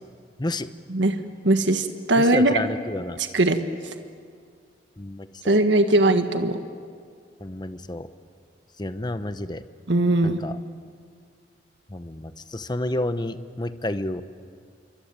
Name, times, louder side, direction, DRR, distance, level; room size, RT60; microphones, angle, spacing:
voice 1, 0.4-0.7 2.2-3.2 5.0-5.6 7.4-8.1 8.8-9.6 10.2-10.6 11.9-14.2, left 1 dB, 25° left, 11 dB, 1.0 m, -30 dB
voice 2, 0.9-2.6 3.3-3.6 5.5-6.6 9.9-10.4, right 2 dB, 85° right, 7 dB, 1.5 m, -20 dB
27.0 x 23.5 x 9.0 m, 2.1 s
head